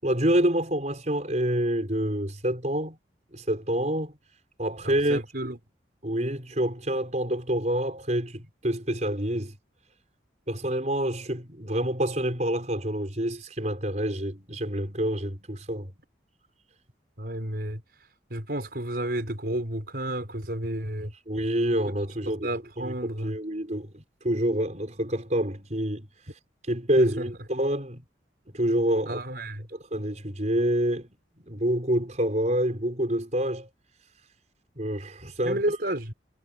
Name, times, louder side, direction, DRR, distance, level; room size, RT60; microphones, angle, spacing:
voice 1, 0.0-3.0 3.3-4.1 4.6-5.2 6.0-9.6 10.5-16.0 21.3-22.5 22.8-26.1 26.7-28.0 28.5-29.2 29.7-31.1 31.4-33.7 34.8-35.8, right 1 dB, 40° right, 5.6 m, -27 dB
voice 2, 4.8-5.6 17.2-17.8 18.3-21.1 21.7-21.8 22.3-23.4 27.0-27.3 29.1-29.7 35.4-36.1, right 1 dB, 55° right, 5.5 m, -31 dB
head